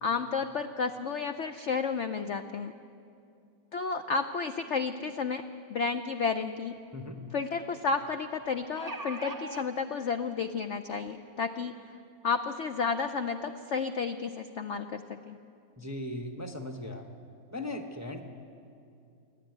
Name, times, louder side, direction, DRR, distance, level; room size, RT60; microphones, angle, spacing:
voice 1, 0.0-2.7 3.7-5.4 5.7-6.8 7.3-11.8 12.2-15.4, left 5 dB, 65° left, 8 dB, 0.7 m, -32 dB
sound 1, 6.3-6.4 6.8-6.9 8.4-9.7 10.6-10.7 11.1-11.2, right 1 dB, 30° right, 0.3 m, -39 dB
voice 2, 15.8-17.0 17.5-18.2, left 1 dB, 10° right, 4 dB, 0.8 m, -38 dB
29.5 x 10.5 x 9.3 m, 2.5 s
omnidirectional pair, 2.0 m